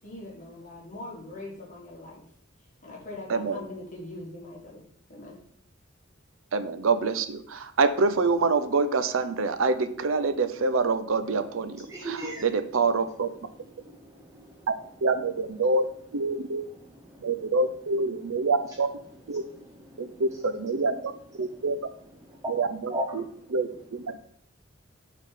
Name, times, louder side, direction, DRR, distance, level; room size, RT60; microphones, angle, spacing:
voice 1, 0.0-2.2 2.8-4.8 5.1-5.4, left 2 dB, 40° left, -3 dB, 1.6 m, -41 dB
voice 2, 6.5-13.3 15.0-15.9 16.1-16.7 17.2-18.9 19.3-19.4 20.0-20.9 21.4-21.8 22.5-23.2 23.5-24.0, right 3 dB, 90° right, 11 dB, 0.6 m, -26 dB
voice 3, 11.9-12.4 13.7-14.7 17.1-17.3 19.9-20.2 22.3-22.5 22.9-23.2, right 1 dB, 15° right, 0 dB, 0.7 m, -36 dB
6.4 x 3.7 x 4.9 m, 0.65 s
head